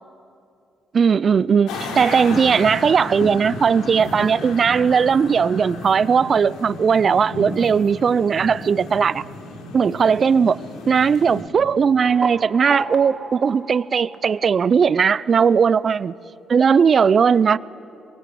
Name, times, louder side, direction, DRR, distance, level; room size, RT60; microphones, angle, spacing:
voice 1, 0.9-9.2 9.7-10.6 10.9-16.1 16.5-17.6, right 6 dB, 50° right, 0.5 m, -18 dB
sound 1, 1.7-11.4, left 2 dB, 80° left, 3.1 m, -33 dB
sound 2, 11.6-15.0, right 3 dB, 30° right, 2.3 m, -33 dB
23.0 x 22.5 x 7.8 m
hypercardioid pair, 50°, 0 cm